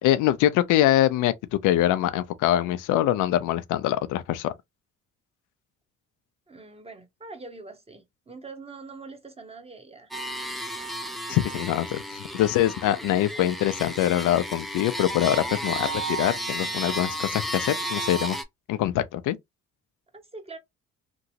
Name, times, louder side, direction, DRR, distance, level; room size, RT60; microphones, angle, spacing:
voice 1, 0.0-4.5 11.3-18.4 18.7-19.4, left 13 dB, 85° left, 0.5 m, -24 dB
voice 2, 6.5-10.1 10.8-11.0 20.1-20.6, right 3 dB, 20° right, 0.9 m, -44 dB
sound 1, 10.1-18.4, right 1 dB, ahead, 0.5 m, -33 dB
2.9 x 2.6 x 2.7 m
cardioid pair, 90°, 30 cm